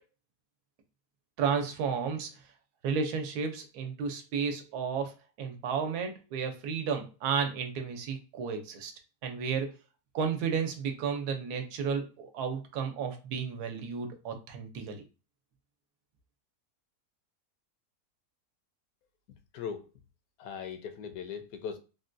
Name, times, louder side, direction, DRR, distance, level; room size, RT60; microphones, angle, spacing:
voice 1, 1.4-2.3 2.8-8.9 9.2-9.7 10.1-15.0, right 6 dB, 80° right, 1.2 m, -32 dB
voice 2, 19.5-19.9 20.4-21.8, left 7 dB, 75° left, 1.0 m, -39 dB
3.6 x 2.2 x 2.5 m
omnidirectional pair, 1.7 m